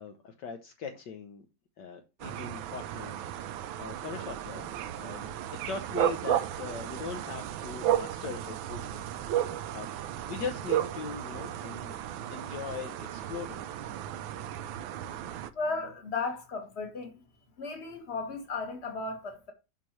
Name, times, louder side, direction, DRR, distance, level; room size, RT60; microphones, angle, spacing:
voice 1, 0.0-1.4 1.8-4.7 4.9-5.4 5.7-9.0 9.3-9.9 10.3-11.9 12.3-13.6, left 6 dB, 70° left, 1.4 m, -40 dB
sound 1, 2.2-15.5, right 11 dB, 85° right, 1.4 m, -34 dB
voice 2, 15.5-17.2 17.6-19.5, left 3 dB, 35° left, 1.7 m, -35 dB
7.7 x 5.9 x 3.1 m
omnidirectional pair, 2.1 m